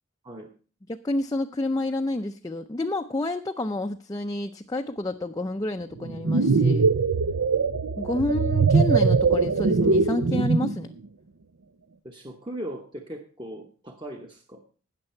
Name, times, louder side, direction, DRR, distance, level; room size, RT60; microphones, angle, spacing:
voice 1, 0.9-6.9 8.0-10.9, left 2 dB, 15° left, 4 dB, 0.4 m, -29 dB
sound 1, 6.0-10.8, right 4 dB, 85° right, 0.7 m, -21 dB
voice 2, 8.1-8.5 12.0-14.6, right 1 dB, 20° right, 3 dB, 1.0 m, -39 dB
18.5 x 6.7 x 4.4 m, 0.39 s
head